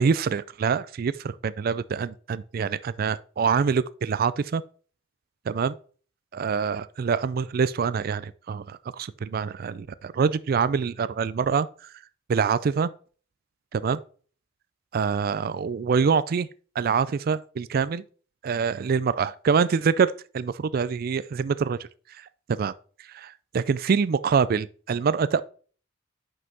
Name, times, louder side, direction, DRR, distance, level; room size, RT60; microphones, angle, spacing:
voice 1, 0.0-4.6 5.5-5.7 6.3-11.9 12.3-12.9 13.7-14.0 14.9-16.5 16.8-18.0 18.4-21.8 22.1-22.3 22.6-22.7 23.1-25.4, right 6 dB, 50° right, 0.3 m, -25 dB
5.5 x 5.4 x 3.9 m
head